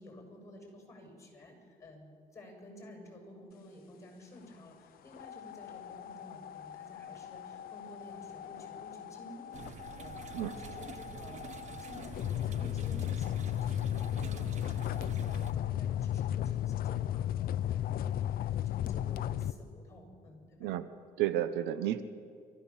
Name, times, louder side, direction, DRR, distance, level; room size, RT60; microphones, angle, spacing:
voice 1, 0.0-2.1 2.3-20.7, left 1 dB, 15° left, 1 dB, 7.3 m, -52 dB
sound 1, 5.1-19.5, left 11 dB, 60° left, 0.7 m, -36 dB
sound 2, 9.5-15.5, right 6 dB, 45° right, 1.2 m, -47 dB
voice 2, 21.2-22.0, right 12 dB, 90° right, 12 dB, 1.0 m, -31 dB
30.0 x 14.0 x 7.3 m, 2.3 s
cardioid pair, 110°, 17 cm